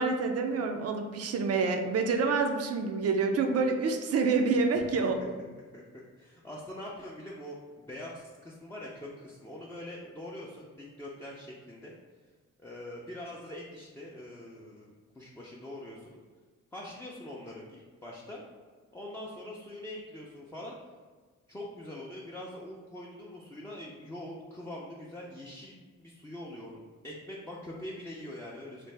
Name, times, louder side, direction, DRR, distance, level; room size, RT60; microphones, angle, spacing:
voice 1, 0.0-5.2, right 4 dB, 55° right, 5 dB, 0.5 m, -27 dB
voice 2, 5.7-11.9 12.6-16.2 16.7-18.4 18.9-20.8 21.5-28.9, left 1 dB, 10° left, -4 dB, 0.5 m, -43 dB
3.3 x 2.0 x 3.2 m, 1.4 s
supercardioid pair, 60°, 31 cm